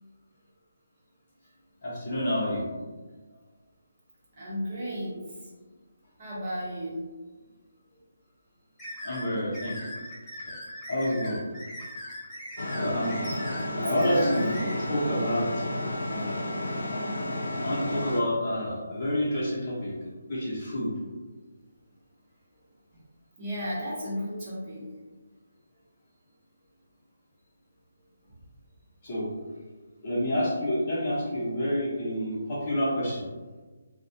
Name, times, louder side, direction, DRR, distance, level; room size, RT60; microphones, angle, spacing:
voice 1, 1.8-2.6 9.0-9.9 10.9-11.4 12.7-13.1 13.8-14.5 14.9-15.6 17.6-19.9 20.3-20.9 29.0-29.3 30.0-33.2, equal, 35° left, -7 dB, 0.8 m, -28 dB
voice 2, 4.3-5.2 6.2-7.0 13.8-14.7 23.4-24.8, equal, 30° right, -8 dB, 0.8 m, -32 dB
sound 1, 8.8-14.7, left 1 dB, ahead, 0.5 m, -40 dB
sound 2, 12.6-18.2, left 1 dB, 80° left, 0.5 m, -31 dB
2.3 x 2.1 x 2.7 m, 1.3 s
hypercardioid pair, 170°, 0 cm